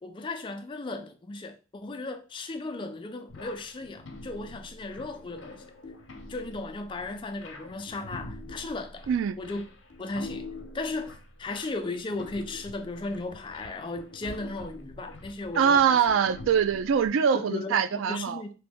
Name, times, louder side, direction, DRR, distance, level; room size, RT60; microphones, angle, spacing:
voice 1, 0.0-5.6 6.3-9.1 9.4-9.7 10.0-10.5 10.7-11.1 11.4-16.0 17.3-18.5, left 2 dB, 25° left, 0.3 m, -36 dB
sound 1, 3.3-17.1, left 2 dB, 80° left, 0.7 m, -45 dB
voice 2, 9.1-9.4 15.6-18.4, right 7 dB, 90° right, 0.3 m, -23 dB
2.9 x 2.8 x 3.5 m
head